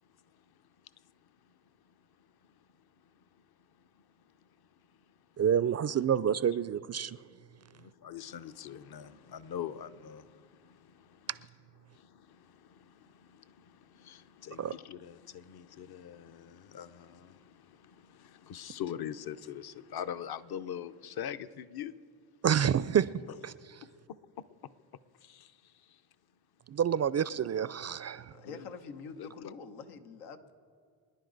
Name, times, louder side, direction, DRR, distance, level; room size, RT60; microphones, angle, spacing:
voice 1, 5.4-7.2 14.6-14.7 22.4-23.1 23.4-23.5 26.7-28.3, right 8 dB, 35° right, 0.4 m, -28 dB
voice 2, 7.8-10.2 14.1-17.3 18.5-21.9 28.4-28.7 29.2-29.5, left 9 dB, 50° left, 0.8 m, -41 dB
voice 3, 28.3-30.5, left 4 dB, 85° left, 1.2 m, -46 dB
25.0 x 10.5 x 4.0 m
supercardioid pair, 55°, 50 cm